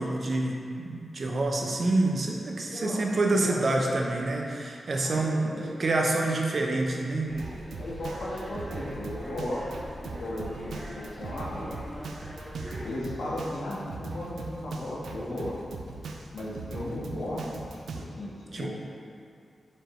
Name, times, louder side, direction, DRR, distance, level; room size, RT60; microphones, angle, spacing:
voice 1, 0.0-7.3 18.5-18.7, right 2 dB, 40° right, 0 dB, 0.6 m, -27 dB
voice 2, 3.3-3.6 5.0-5.7 7.8-9.7 10.0-11.7 12.8-15.5 16.3-17.4 17.9-18.3 18.6-18.7, left 1 dB, 85° left, -6 dB, 1.4 m, -35 dB
sound 1, 7.3-13.0, equal, ahead, 0.9 m, -42 dB
Drum kit, 7.4-18.0, right 3 dB, 90° right, 0.4 m, -40 dB
5.3 x 4.6 x 4.4 m, 2.4 s
wide cardioid pair, 175°, 0 cm